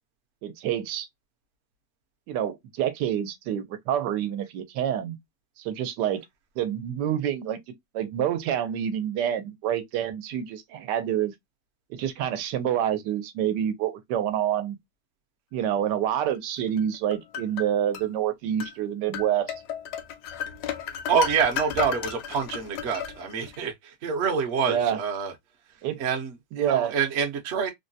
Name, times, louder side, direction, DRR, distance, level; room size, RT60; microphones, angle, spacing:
voice 1, 0.4-1.1 2.3-5.2 5.6-6.2 6.6-7.6 7.9-11.3 11.9-14.8 15.5-19.5 24.7-25.0 25.8-26.0 26.5-26.9, right 10 dB, 85° right, 1.2 m, -27 dB
sound 1, 16.8-18.1 18.6-18.8 19.1-23.6, left 9 dB, 80° left, 1.2 m, -34 dB
voice 2, 21.1-25.3 26.0-27.7, right 6 dB, 55° right, 0.8 m, -26 dB
3.7 x 2.1 x 2.6 m
omnidirectional pair, 1.8 m